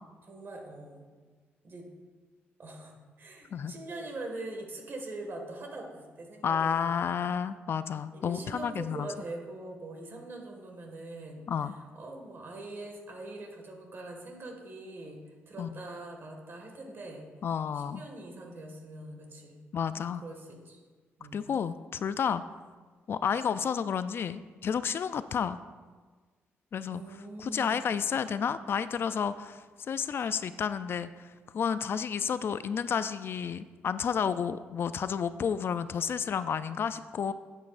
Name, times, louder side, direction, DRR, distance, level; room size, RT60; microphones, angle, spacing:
voice 1, 0.2-1.0 1.6-1.9 2.6-7.1 8.1-11.5 11.9-15.2 15.5-17.3 17.7-19.6 20.1-20.8 21.2-21.4 26.9-27.9, right 2 dB, 50° right, 2 dB, 1.8 m, -43 dB
voice 2, 6.4-9.1 11.5-11.7 15.6-15.7 17.4-18.0 19.7-20.2 21.3-22.4 23.1-25.6 26.7-27.0 27.4-37.3, left 7 dB, 55° left, 13 dB, 0.3 m, -31 dB
9.5 x 8.3 x 2.5 m, 1.4 s
cardioid pair, 80°, 5 cm